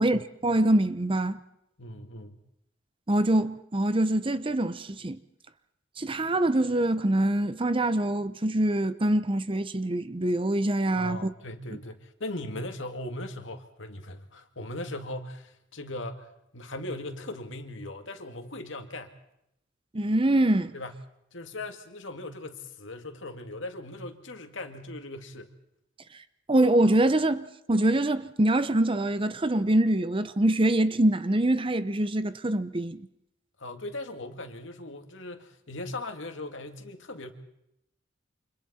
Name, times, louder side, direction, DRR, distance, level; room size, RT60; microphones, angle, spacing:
voice 1, 0.0-1.4 3.1-5.2 6.0-11.3 19.9-20.7 26.5-33.1, right 1 dB, 25° right, 0.8 m, -24 dB
voice 2, 1.8-2.4 11.0-19.1 20.7-21.0 21.3-25.5 33.6-37.3, left 2 dB, 75° left, 2.2 m, -39 dB
29.0 x 26.5 x 4.3 m
head